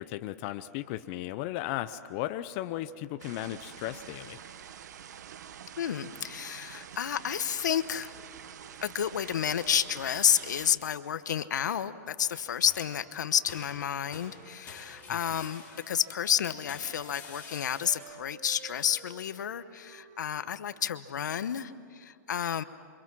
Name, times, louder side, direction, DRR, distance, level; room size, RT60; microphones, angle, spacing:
voice 1, 0.0-4.4 15.1-15.4, left 14 dB, 35° left, 11 dB, 0.7 m, -36 dB
sound 1, 3.2-10.7, right 9 dB, 70° right, 1.3 m, -47 dB
voice 2, 5.8-8.1 8.8-22.6, left 9 dB, 80° left, 13 dB, 1.0 m, -30 dB
sound 2, 12.2-13.0 13.5-16.2 16.7-18.1, left 4 dB, 20° left, 5.1 m, -49 dB
Wind instrument woodwind instrument, 12.7-16.5 16.8-20.9, right 5 dB, 55° right, 2.6 m, -54 dB
28.5 x 25.0 x 6.2 m, 2.2 s
hypercardioid pair, 150°, 10 cm